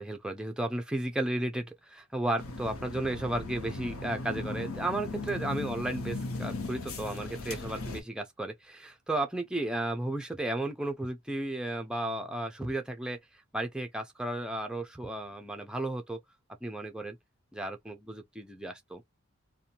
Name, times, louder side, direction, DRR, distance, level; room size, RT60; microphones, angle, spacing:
voice 1, 0.0-16.2 16.6-17.2 17.5-19.0, right 1 dB, 5° right, 0.4 m, -34 dB
sound 1, 2.4-8.0, left 2 dB, 80° left, 0.8 m, -37 dB
2.6 x 2.2 x 2.8 m
head